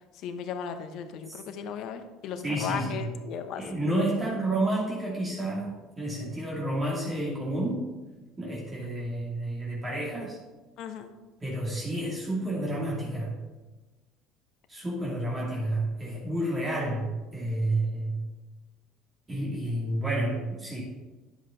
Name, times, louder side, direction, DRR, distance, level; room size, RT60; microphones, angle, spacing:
voice 1, 0.1-3.6 10.8-11.1, left 7 dB, 60° left, 8 dB, 1.0 m, -36 dB
voice 2, 2.4-3.1 3.6-5.7 6.0-7.9 8.4-10.4 11.4-13.3 14.7-18.2 19.3-20.8, right 1 dB, 25° right, -4 dB, 2.8 m, -30 dB
10.0 x 7.6 x 4.2 m, 1.2 s
hypercardioid pair, 65°, 0 cm